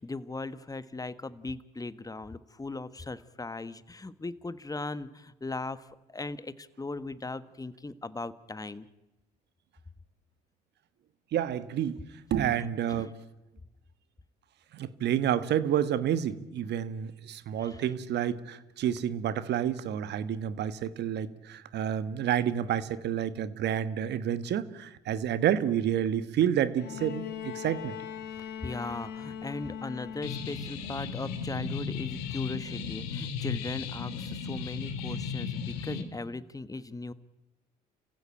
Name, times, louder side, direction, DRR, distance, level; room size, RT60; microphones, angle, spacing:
voice 1, 0.0-8.9 12.9-13.1 17.6-17.8 28.6-37.1, left 3 dB, 20° left, 1.4 m, -38 dB
voice 2, 11.3-12.0 12.3-13.1 14.7-27.9, right 10 dB, 60° right, 1.4 m, -29 dB
Bowed string instrument, 26.8-30.8 32.1-32.2, left 8 dB, 60° left, 2.6 m, -40 dB
sound 1, 30.2-36.0, left 6 dB, 80° left, 2.3 m, -35 dB
29.5 x 15.5 x 9.1 m
hypercardioid pair, 50°, 19 cm